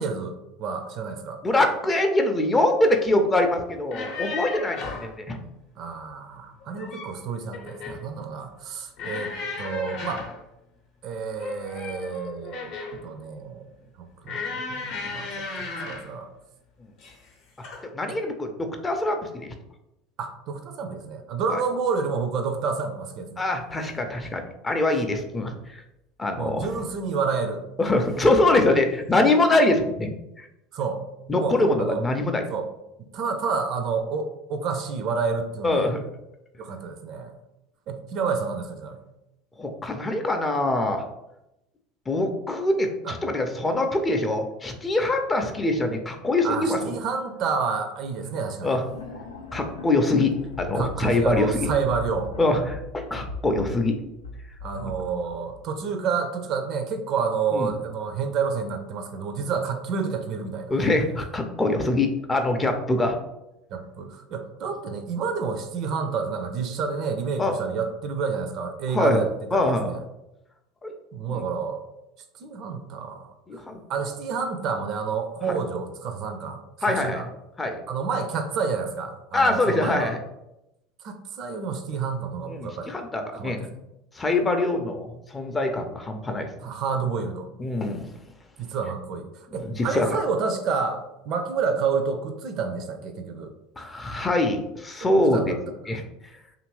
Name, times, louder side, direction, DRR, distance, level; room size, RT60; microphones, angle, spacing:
voice 1, 0.0-1.4 5.8-9.3 9.6-10.3 11.0-12.7 13.0-13.7 14.2-16.3 18.1-18.2 20.2-23.5 26.4-27.6 30.7-31.0 31.4-32.0 32.5-32.7 33.0-35.9 36.6-37.4 37.9-39.0 43.0-43.2 46.4-48.8 50.8-52.3 54.6-60.7 63.7-70.0 71.1-71.8 72.4-73.3 73.9-76.6 76.9-77.3 77.9-80.1 81.0-82.9 83.3-83.8 86.6-87.5 88.6-91.0 91.3-93.5 95.0-95.6, right 5 dB, 50° right, 7 dB, 0.4 m, -29 dB
voice 2, 1.4-5.4 17.9-19.5 21.5-21.6 23.4-25.5 26.2-26.7 27.8-30.1 30.4-30.5 31.3-32.4 35.6-36.0 39.6-41.0 42.1-46.8 48.6-48.8 49.5-51.7 52.4-54.0 57.5-57.7 60.7-63.2 67.4-67.5 68.9-69.2 69.5-69.9 70.8-70.9 71.3-71.4 73.5-73.8 75.4-75.5 76.8-77.2 77.6-77.8 79.3-80.2 82.5-83.7 84.2-86.5 87.6-88.1 89.6-90.2 93.8-95.4 95.9-96.0, left 2 dB, 20° left, 5 dB, 0.5 m, -24 dB
sound 1, 3.8-5.1 6.6-7.2 7.5-8.0 9.0-10.4 11.4-13.1 14.2-16.1 17.0-17.3 17.6-17.8, left 4 dB, 55° left, 0.7 m, -35 dB
sound 2, 48.9-55.8, left 2 dB, 85° left, 0.4 m, -38 dB
2.8 x 2.5 x 3.0 m, 0.90 s
figure-of-eight pair, 75°, 0 cm